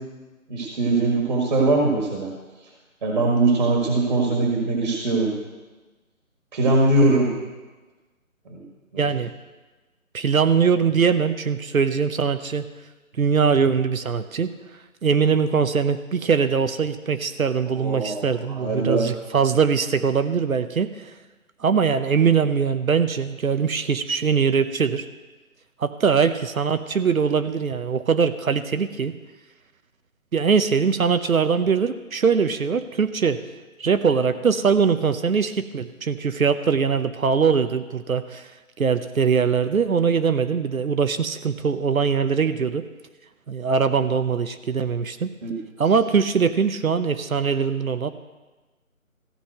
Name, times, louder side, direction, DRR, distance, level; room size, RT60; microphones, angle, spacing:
voice 1, 0.5-2.3 3.0-5.4 6.5-7.3 8.4-8.6 8.9-9.1 17.7-19.0 45.4-45.5, right 2 dB, 35° right, -1 dB, 1.7 m, -21 dB
voice 2, 9.0-9.3 10.1-12.6 13.2-14.5 15.0-21.1 21.6-25.0 25.8-29.1 30.3-33.4 33.8-38.5 38.8-42.9 43.5-45.3 45.8-48.1, right 6 dB, 75° right, 10 dB, 0.8 m, -22 dB
14.5 x 5.6 x 7.7 m, 1.2 s
figure-of-eight pair, 160°, 42 cm